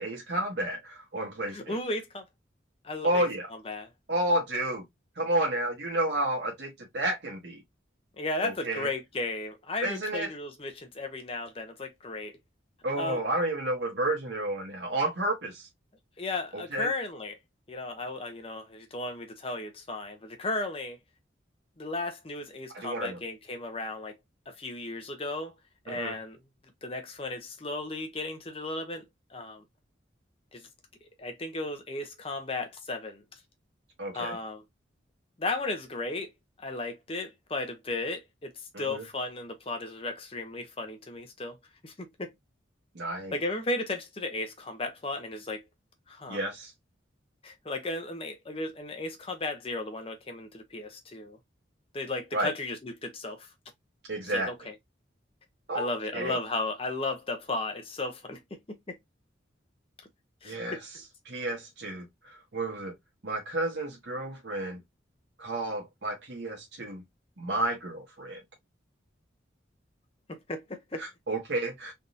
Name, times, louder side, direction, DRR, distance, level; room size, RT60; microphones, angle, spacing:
voice 1, 0.0-1.8 3.0-3.5 4.1-4.8 5.2-7.6 8.4-8.9 9.8-10.3 12.8-15.7 16.5-16.9 22.7-23.2 25.9-26.2 34.0-34.4 38.7-39.0 42.9-43.4 46.3-46.7 52.3-52.5 54.1-54.5 55.7-56.4 60.4-60.8 61.2-62.9 63.2-64.8 65.4-67.0 67.4-68.4 71.0-71.9, right 1 dB, 60° right, 1.0 m, -31 dB
voice 2, 1.5-2.3 2.8-3.3 3.7-3.9 8.2-12.3 13.0-13.2 16.2-17.3 17.7-21.0 21.8-24.2 24.5-25.5 25.8-26.4 26.8-29.0 29.3-29.6 30.5-30.7 31.2-33.2 34.1-34.6 35.4-36.3 36.6-41.6 41.8-42.3 43.3-45.6 46.1-46.4 47.4-51.4 51.9-53.5 54.3-54.7 55.7-59.0 60.4-60.8 70.3-71.0, left 2 dB, 30° left, 0.6 m, -35 dB
3.4 x 2.6 x 2.5 m
head